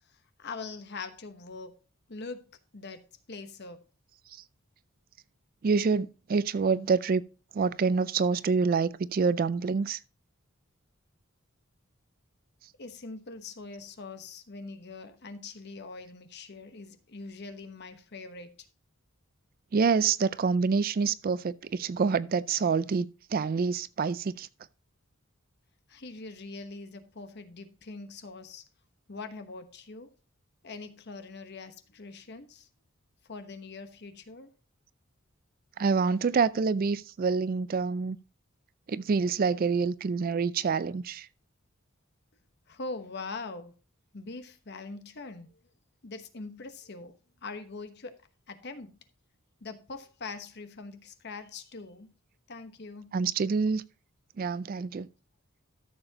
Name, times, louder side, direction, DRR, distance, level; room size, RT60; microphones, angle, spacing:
voice 1, 0.4-1.8 2.1-2.5 2.7-3.0 3.3-3.8 12.8-18.6 25.9-28.6 29.1-30.1 30.6-32.7 33.3-34.5 42.7-43.7 44.1-45.5 46.0-47.1 47.4-48.9 49.6-52.1 52.5-53.2, left 3 dB, 50° left, 1.1 m, -42 dB
voice 2, 5.6-7.2 7.5-10.0 19.7-24.5 35.8-38.2 38.9-41.3 53.1-53.8 54.4-55.1, right 5 dB, 45° right, 0.4 m, -27 dB
13.5 x 6.9 x 2.8 m
head